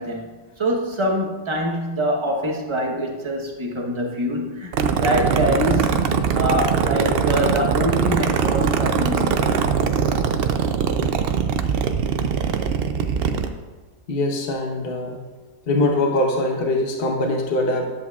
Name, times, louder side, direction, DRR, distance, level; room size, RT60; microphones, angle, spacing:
voice 1, 0.0-4.7 5.0-6.0 6.3-9.6, equal, 25° right, 0 dB, 0.9 m, -25 dB
sound 1, 4.7-13.5, right 6 dB, 70° right, 0.6 m, -21 dB
voice 2, 14.1-15.2 15.7-17.9, left 2 dB, 45° left, 1 dB, 1.1 m, -22 dB
10.5 x 8.1 x 2.3 m, 1.2 s
omnidirectional pair, 1.5 m